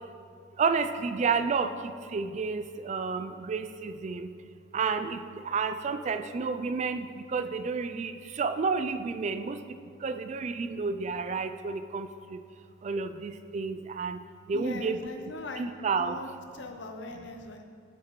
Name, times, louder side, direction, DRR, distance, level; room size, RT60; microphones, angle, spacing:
voice 1, 0.6-4.3 4.7-9.6 10.0-12.4 12.8-14.2 14.5-15.0 15.6-16.2, right 5 dB, 40° right, 10 dB, 0.3 m, -30 dB
voice 2, 14.5-15.7 16.0-16.3 16.5-17.6, left 2 dB, 70° left, 5 dB, 0.7 m, -40 dB
8.5 x 7.5 x 3.1 m, 2.3 s
head